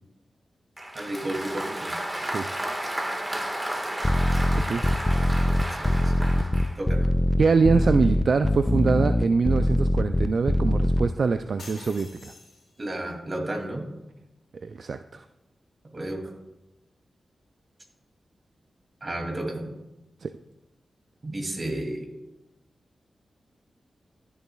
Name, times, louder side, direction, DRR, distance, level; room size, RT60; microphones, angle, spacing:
Applause, 0.8-6.8, right 1 dB, 20° right, 1.5 m, -32 dB
voice 1, 0.9-2.0 5.7-6.5 6.7-7.1 12.8-13.8 15.9-16.3 19.0-19.7 21.2-22.1, right 1 dB, 40° right, 1 dB, 2.5 m, -32 dB
sound 1, 4.0-11.0, left 1 dB, 15° left, 0.4 m, -22 dB
voice 2, 7.4-12.3 14.6-15.2 20.2-20.3, right 4 dB, 65° right, 9 dB, 0.3 m, -24 dB
sound 2, 11.6-13.0, left 3 dB, 75° left, 2.3 m, -46 dB
14.5 x 7.1 x 2.3 m, 0.96 s
cardioid pair, 55°, 0 cm